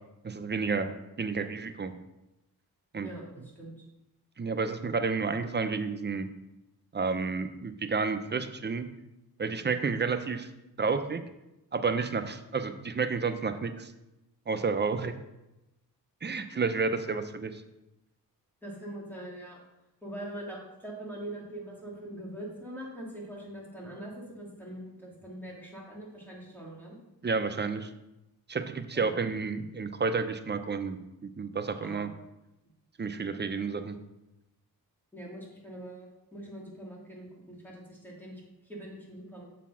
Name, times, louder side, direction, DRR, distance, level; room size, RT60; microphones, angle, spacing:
voice 1, 0.2-0.9 1.2-1.9 2.9-3.1 4.4-6.3 6.9-8.9 9.4-10.5 10.8-11.2 11.7-13.9 14.5-15.2 16.2-17.6 27.2-27.9 28.5-32.1 33.0-34.0, right 4 dB, 30° right, 9 dB, 0.7 m, -30 dB
voice 2, 3.0-3.7 18.6-19.6 20.0-27.0 28.9-29.2 31.8-32.0 35.1-39.4, right 1 dB, 5° left, -4 dB, 2.7 m, -43 dB
7.2 x 4.2 x 5.7 m, 0.94 s
cardioid pair, 75°, 37 cm